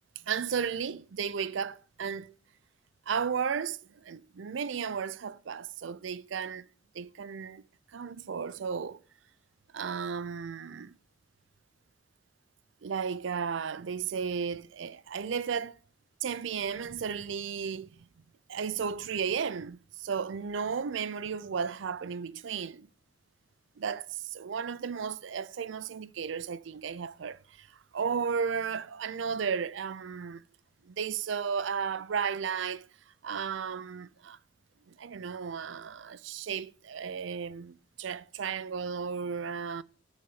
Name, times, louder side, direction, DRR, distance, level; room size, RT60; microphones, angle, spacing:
voice 1, 0.3-2.3 3.1-6.7 6.9-7.6 7.9-9.0 9.7-11.0 12.8-15.8 16.2-18.0 18.5-22.9 23.8-30.4 30.9-32.9 33.2-34.4 35.0-39.8, right 6 dB, 75° right, 0.5 m, -34 dB
9.5 x 4.1 x 7.2 m
head